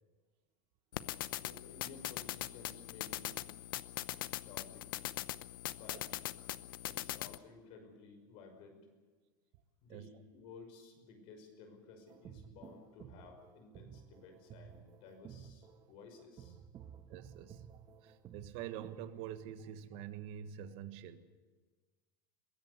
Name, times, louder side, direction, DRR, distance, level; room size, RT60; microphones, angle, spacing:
sound 1, 0.9-7.4, left 15 dB, 85° left, 0.8 m, -41 dB
voice 1, 1.3-3.4 4.4-5.0 5.7-6.1 6.8-8.9 9.8-16.6, left 4 dB, 55° left, 6 dB, 5.7 m, -55 dB
sound 2, 12.1-19.1, right 8 dB, 30° right, 1.4 m, -54 dB
voice 2, 17.1-17.6 18.0-21.3, right 10 dB, 55° right, 10 dB, 1.5 m, -46 dB
22.0 x 16.5 x 8.2 m, 1.4 s
supercardioid pair, 140°, 11 cm